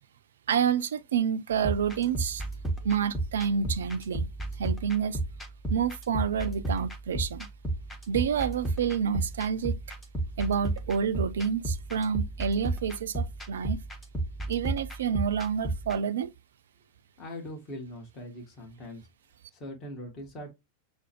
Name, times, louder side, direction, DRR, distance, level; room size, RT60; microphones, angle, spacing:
voice 1, 0.5-2.4 2.8-4.3 4.6-5.2 5.7-7.5 8.1-9.8 10.4-13.8 14.5-16.3, right 7 dB, 65° right, 0.3 m, -28 dB
sound 1, 1.5-16.0, right 2 dB, 10° left, 0.8 m, -34 dB
voice 2, 17.2-19.1 19.5-20.5, left 1 dB, 25° left, 1.4 m, -41 dB
6.0 x 2.1 x 2.9 m
figure-of-eight pair, 90°, 0 cm